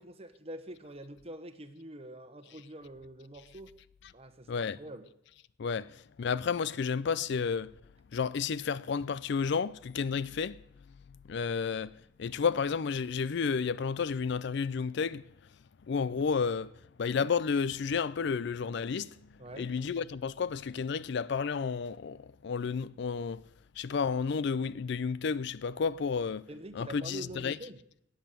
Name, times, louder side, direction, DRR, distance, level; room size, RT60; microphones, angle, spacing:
voice 1, 0.0-3.7 4.1-5.1 19.4-19.7 26.5-27.8, right 1 dB, 30° right, 1.1 m, -45 dB
voice 2, 4.5-4.8 5.6-7.7 8.1-10.6 11.2-11.9 12.2-15.2 15.9-16.7 17.0-19.2 19.6-23.4 23.8-26.4 26.7-27.6, left 5 dB, 60° left, 0.4 m, -31 dB
13.5 x 9.0 x 6.8 m
head